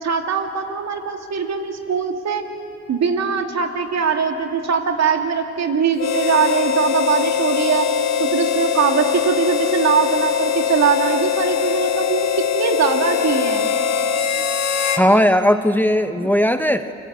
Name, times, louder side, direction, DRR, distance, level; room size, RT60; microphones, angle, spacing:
voice 1, 0.0-2.4 2.9-7.9 8.2-12.3 12.5-13.7, right 6 dB, 60° right, 4 dB, 2.5 m, -21 dB
Harmonica, 6.0-15.1, left 8 dB, 60° left, 1.7 m, -21 dB
voice 2, 15.0-16.9, equal, 5° left, 8 dB, 0.8 m, -17 dB
29.5 x 22.5 x 8.1 m, 2.7 s
cardioid pair, 90°, 30 cm